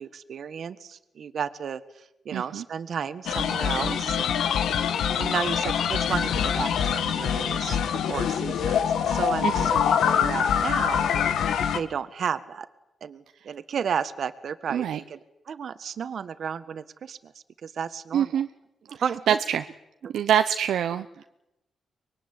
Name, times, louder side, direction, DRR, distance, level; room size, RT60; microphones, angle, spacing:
voice 1, 0.0-4.5 5.2-11.1 11.7-12.7 13.0-15.2 15.5-17.3 17.6-18.4 18.9-19.4 20.0-20.1, right 7 dB, 60° right, 13 dB, 1.6 m, -33 dB
voice 2, 2.3-2.6 9.4-9.7 14.7-15.0 18.1-18.5 19.3-19.6 20.1-21.3, right 9 dB, 80° right, 9 dB, 0.9 m, -25 dB
sound 1, 3.3-11.8, left 8 dB, 85° left, 1.8 m, -25 dB
24.5 x 22.0 x 9.9 m, 0.92 s
cardioid pair, 95°, 0 cm